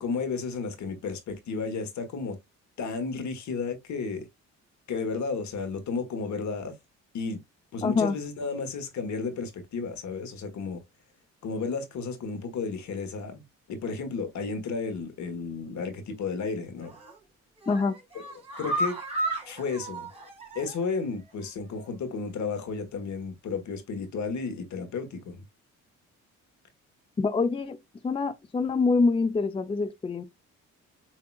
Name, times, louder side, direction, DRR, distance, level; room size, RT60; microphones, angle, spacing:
voice 1, 0.0-2.4 2.8-4.3 4.9-6.7 7.1-7.4 7.7-10.8 11.4-13.4 13.7-16.9 18.6-19.0 19.5-20.1 20.5-25.4, left 4 dB, 70° left, 1.4 m, -33 dB
voice 2, 7.8-8.2 17.7-18.0 27.2-27.8 28.0-30.2, left 4 dB, 20° left, 0.4 m, -25 dB
sound 1, 16.8-17.2 17.6-21.0 21.3-21.4 21.8-21.9, right 1 dB, 20° right, 2.8 m, -34 dB
7.5 x 2.8 x 2.3 m
cardioid pair, 90°, 30 cm